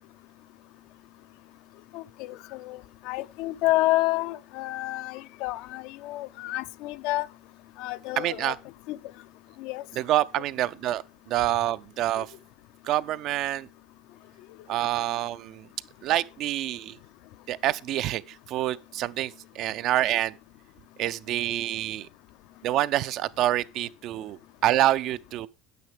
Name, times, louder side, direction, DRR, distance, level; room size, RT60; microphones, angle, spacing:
voice 1, 1.9-2.8 3.0-7.3 7.8-8.5 8.9-9.0 9.6-9.8, left 18 dB, 70° left, 0.4 m, -29 dB
voice 2, 8.2-8.6 10.0-12.3 12.8-13.7 14.7-15.7 16.0-17.0 17.5-20.4 21.0-22.1 22.6-25.5, right 13 dB, 55° right, 0.4 m, -27 dB
9.2 x 8.4 x 3.4 m
supercardioid pair, 125°, 0 cm